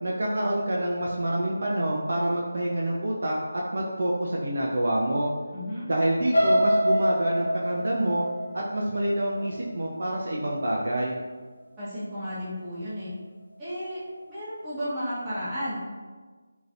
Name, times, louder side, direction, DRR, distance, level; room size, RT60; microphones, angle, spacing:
voice 1, 0.0-5.3 5.9-8.3 8.5-11.2, right 1 dB, 60° right, -4 dB, 0.4 m, -27 dB
voice 2, 5.5-5.9 11.8-13.1 13.6-14.0 14.3-15.7, equal, 15° right, -14 dB, 1.2 m, -33 dB
sound 1, 6.3-10.3 10.8-11.1 11.4-11.5, equal, 70° left, 0.5 m, -26 dB
3.0 x 2.6 x 2.6 m, 1.4 s
figure-of-eight pair, 160°, 0 cm